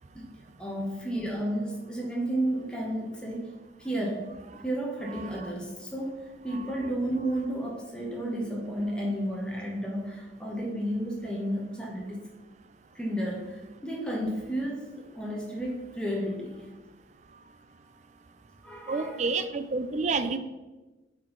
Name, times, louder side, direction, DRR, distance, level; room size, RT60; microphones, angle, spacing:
voice 1, 0.6-3.5 3.8-4.4 4.6-6.2 6.4-12.3 12.9-16.6 18.6-19.2, right 1 dB, 5° left, -2 dB, 1.2 m, -32 dB
voice 2, 18.9-20.4, right 4 dB, 40° right, 11 dB, 0.4 m, -28 dB
8.3 x 4.5 x 3.9 m, 1.1 s
head